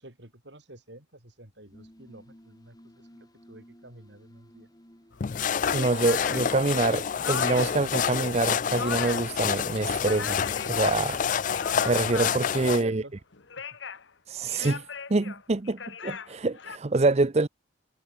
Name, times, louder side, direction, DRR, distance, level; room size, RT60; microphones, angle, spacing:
voice 1, 0.0-4.7 12.4-13.1, right 2 dB, 60° right, 4.9 m, -47 dB
sound 1, 1.5-12.0, equal, 20° left, 3.7 m, -55 dB
sound 2, 5.1-5.2 5.6-7.9 8.3-9.4 9.7-11.0 11.3-12.6 13.3-14.1 14.5-16.8, left 6 dB, 65° left, 1.2 m, -39 dB
sound 3, 5.2-12.8, left 7 dB, 40° left, 0.4 m, -28 dB
voice 2, 5.7-10.4 10.7-11.2 11.9-13.0 14.3-17.5, right 3 dB, 35° right, 0.6 m, -26 dB
head